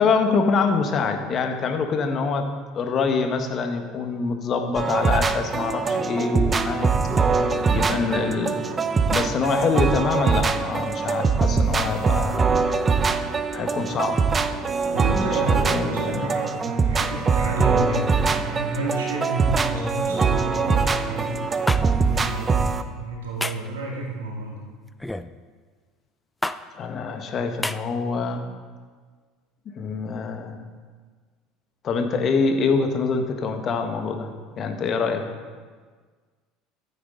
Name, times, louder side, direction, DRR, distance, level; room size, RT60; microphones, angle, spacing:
voice 1, 0.0-2.5 2.7-6.9 7.7-8.6 9.1-12.6 13.5-14.2 15.2-16.4 26.7-28.4 29.6-30.6 31.8-34.3 34.6-35.2, left 4 dB, 45° left, 5 dB, 1.4 m, -25 dB
sound 1, 4.7-22.8, right 5 dB, 30° right, 0.7 m, -23 dB
voice 2, 7.0-7.5 14.9-21.4 22.0-24.6, right 2 dB, 80° right, -2 dB, 2.1 m, -30 dB
sound 2, 21.7-21.8 23.4-23.7 25.0-25.3 26.4-26.6 27.6-27.8, left 1 dB, 10° left, 0.5 m, -27 dB
14.0 x 8.1 x 3.9 m, 1.5 s
hypercardioid pair, 70°, 0 cm